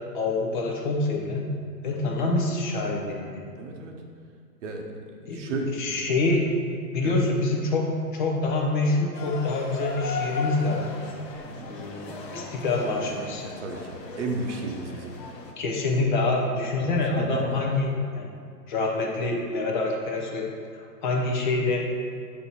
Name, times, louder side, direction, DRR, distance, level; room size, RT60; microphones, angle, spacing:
voice 1, 0.1-1.5 1.8-3.5 5.3-6.5 6.9-7.9 8.1-10.9 11.7-13.4 15.6-18.3 18.7-21.9, left 2 dB, 30° left, 0 dB, 0.6 m, -26 dB
voice 2, 3.6-3.9 4.6-4.8 5.3-6.0 7.0-7.2 11.5-11.7 13.4-15.1 16.8-17.6, right 2 dB, 45° right, 2 dB, 0.9 m, -33 dB
sound 1, 9.1-15.5, left 4 dB, 80° left, 1.0 m, -37 dB
8.3 x 2.9 x 4.1 m, 2.3 s
hypercardioid pair, 140°, 49 cm